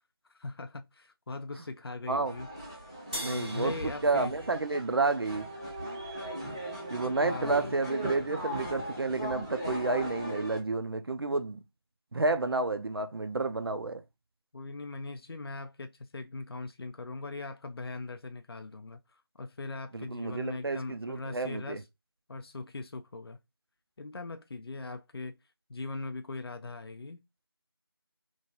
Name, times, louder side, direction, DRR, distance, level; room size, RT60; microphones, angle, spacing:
voice 1, 0.3-2.5 3.2-4.3 7.0-7.8 14.5-21.8 22.3-23.4 24.0-25.4 25.7-27.2, left 3 dB, 70° left, 0.4 m, -40 dB
sound 1, 2.3-10.6, equal, 10° right, 0.6 m, -38 dB
sound 2, 3.1-5.7, right 1 dB, 85° right, 0.9 m, -43 dB
voice 2, 3.2-5.5 6.9-11.6 12.1-14.0 19.9-21.8, right 3 dB, 65° right, 0.4 m, -30 dB
3.0 x 2.4 x 2.7 m
figure-of-eight pair, 175°, 13 cm